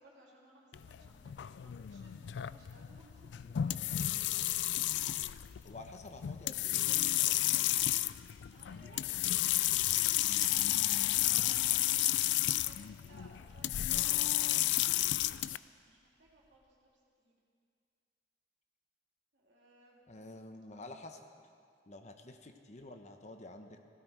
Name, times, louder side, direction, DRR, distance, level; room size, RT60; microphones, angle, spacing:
voice 1, 0.0-4.6 8.4-10.1 11.1-16.9 17.2-17.4 19.3-20.3 22.7-22.9, right 1 dB, 75° right, -4 dB, 3.5 m, -61 dB
sound 1, 0.7-15.6, left 14 dB, 80° left, 0.3 m, -32 dB
voice 2, 5.6-7.9 11.4-11.7 20.1-21.2 21.9-23.9, left 2 dB, 40° left, 6 dB, 1.0 m, -50 dB
sound 2, 7.7-16.6, right 3 dB, 40° right, 3.6 m, -61 dB
17.0 x 16.0 x 4.7 m, 2.2 s
head